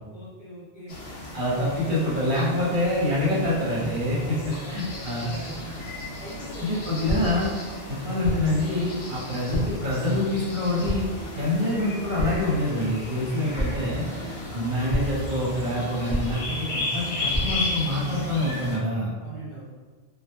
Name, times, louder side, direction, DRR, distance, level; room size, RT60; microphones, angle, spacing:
voice 1, 0.1-1.0 4.2-5.8 6.2-7.0 14.1-14.5 19.2-19.7, right 1 dB, 50° left, -8 dB, 0.8 m, -41 dB
sound 1, 0.9-18.8, left 2 dB, 75° left, 0.9 m, -35 dB
voice 2, 1.3-5.3 6.6-7.5 7.9-11.0 11.3-14.0 14.5-19.1, left 1 dB, 55° right, -7 dB, 0.8 m, -26 dB
sound 2, 7.1-7.5 8.2-8.6 9.5-9.9 10.8-11.3 12.2-12.6 13.6-14.1 14.9-15.3 16.1-16.6 17.3-17.8, equal, 20° right, 0.7 m, -30 dB
2.1 x 2.0 x 2.9 m, 1.4 s
omnidirectional pair, 1.1 m